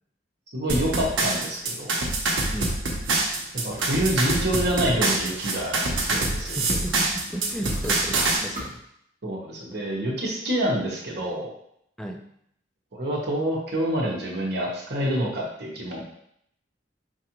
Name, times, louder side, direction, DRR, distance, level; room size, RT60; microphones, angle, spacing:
voice 1, 0.5-1.9 3.6-5.8 6.1-6.6 9.2-11.5 12.9-16.0, right 1 dB, 60° right, -3 dB, 1.0 m, -27 dB
sound 1, 0.7-8.4, right 2 dB, 90° right, 0.8 m, -25 dB
sound 2, 3.7-4.4 4.7-8.7, equal, 40° right, 1.2 m, -42 dB
voice 2, 6.4-8.8 12.0-12.2 16.0-16.1, right 1 dB, 5° left, 2 dB, 0.3 m, -34 dB
4.6 x 2.5 x 2.9 m, 0.72 s
head